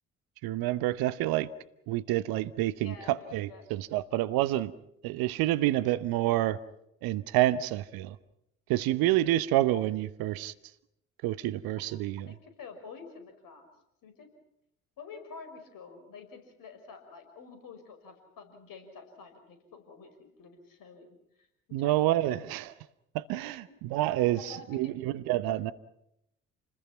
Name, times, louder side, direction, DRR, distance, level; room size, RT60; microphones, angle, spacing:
voice 1, 0.4-1.5 1.9-4.7 5.0-6.6 7.0-8.2 8.7-10.5 11.2-12.3 21.7-22.7 23.1-24.4 24.7-25.7, right 15 dB, 60° right, 1.0 m, -28 dB
voice 2, 2.8-3.6 12.3-13.7 14.0-14.3 15.0-21.2 21.8-22.2 23.4-23.9 24.3-25.0, left 4 dB, 55° left, 5.8 m, -48 dB
29.0 x 20.5 x 5.9 m
figure-of-eight pair, 50°, 40 cm